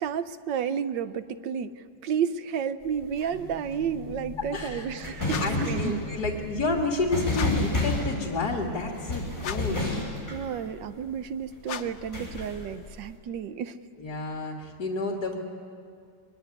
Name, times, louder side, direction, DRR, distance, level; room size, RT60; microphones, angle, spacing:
voice 1, 0.0-1.7 2.0-5.9 10.3-13.8, right 8 dB, 80° right, 12 dB, 1.5 m, -31 dB
sound 1, 2.8-11.2 11.9-13.1, left 2 dB, 25° left, 7.6 m, -31 dB
sound 2, 3.3-10.4, left 4 dB, 55° right, 3.3 m, -44 dB
voice 2, 4.5-5.0 5.4-10.0 14.0-15.4, left 2 dB, 60° left, 1 dB, 2.4 m, -30 dB
sound 3, 5.3-5.7 7.3-7.8 9.4-9.9 11.6-12.1, left 8 dB, 90° left, 1.7 m, -37 dB
23.5 x 21.0 x 9.6 m, 2.3 s
omnidirectional pair, 2.0 m